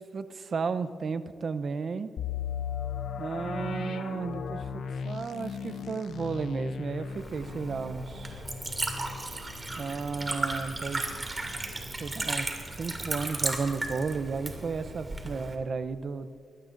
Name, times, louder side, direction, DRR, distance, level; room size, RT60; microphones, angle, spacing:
voice 1, 0.1-2.1 3.2-8.4 9.8-11.1 12.0-16.3, right 5 dB, 55° right, 12 dB, 0.7 m, -33 dB
sound 1, 2.2-11.9 12.2-12.3 12.8-13.1, left 7 dB, 80° left, 0.6 m, -38 dB
Liquid, 7.0-15.5, right 2 dB, 30° right, 2.5 m, -35 dB
22.0 x 18.0 x 2.6 m, 2.5 s
cardioid pair, 85°, 0 cm